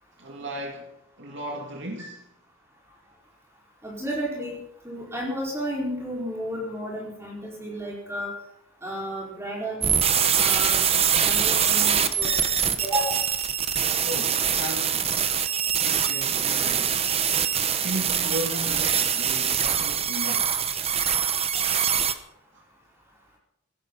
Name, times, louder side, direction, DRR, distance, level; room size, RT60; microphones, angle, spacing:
voice 1, 0.2-0.9 1.2-2.2 14.0-15.1 15.8-17.1 17.8-20.5, right 1 dB, 55° right, 2.6 m, -35 dB
voice 2, 3.8-4.6 4.8-8.3 8.8-10.0 10.3-10.9 11.2-12.3 12.8-13.3, equal, 10° right, 4.6 m, -32 dB
sound 1, 9.8-22.1, right 8 dB, 30° right, 0.9 m, -24 dB
16.5 x 13.0 x 5.5 m
head